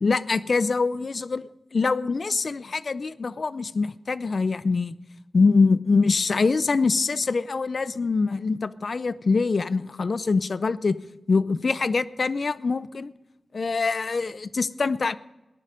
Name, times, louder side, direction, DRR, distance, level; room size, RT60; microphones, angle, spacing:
voice 1, 0.0-5.0 5.3-11.0 11.3-13.1 13.5-15.2, left 4 dB, 60° left, 16 dB, 0.5 m, -24 dB
18.0 x 11.0 x 5.2 m, 1.0 s
wide cardioid pair, 65°, 0 cm